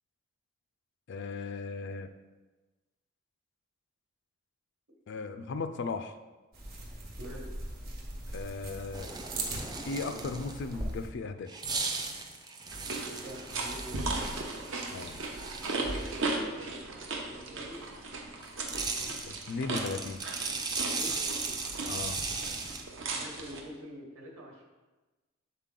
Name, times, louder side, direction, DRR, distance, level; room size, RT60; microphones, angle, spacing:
voice 1, 1.1-2.1 5.1-6.1 8.3-9.1 9.5-11.5 14.9-15.2 19.0-20.2 21.9-22.2, left 4 dB, 55° left, 9 dB, 0.3 m, -37 dB
sound 1, 6.5-11.1, right 2 dB, 50° right, 1.2 m, -40 dB
voice 2, 7.2-7.5 13.2-14.5 15.8-17.9 20.8-21.6 23.1-24.6, equal, 80° right, -2 dB, 1.4 m, -46 dB
sound 2, 8.9-10.7 11.5-16.3 18.4-22.8, right 4 dB, 20° right, 0.4 m, -37 dB
sound 3, 12.7-23.6, right 2 dB, 65° right, 0.8 m, -37 dB
7.4 x 4.1 x 3.7 m, 1.2 s
head